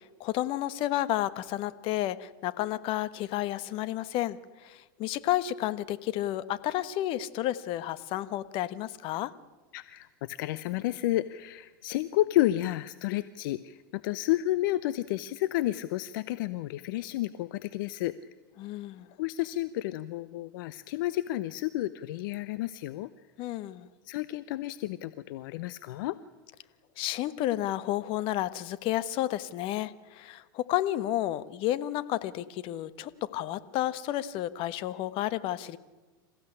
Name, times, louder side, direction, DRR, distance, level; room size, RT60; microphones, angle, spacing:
voice 1, 0.2-9.3 18.6-19.1 23.4-23.9 27.0-35.8, left 14 dB, 50° left, 15 dB, 1.3 m, -31 dB
voice 2, 9.7-18.1 19.2-23.1 24.0-26.2, left 15 dB, 65° left, 15 dB, 0.8 m, -31 dB
27.5 x 15.5 x 9.9 m, 1.2 s
hypercardioid pair, 105°, 12 cm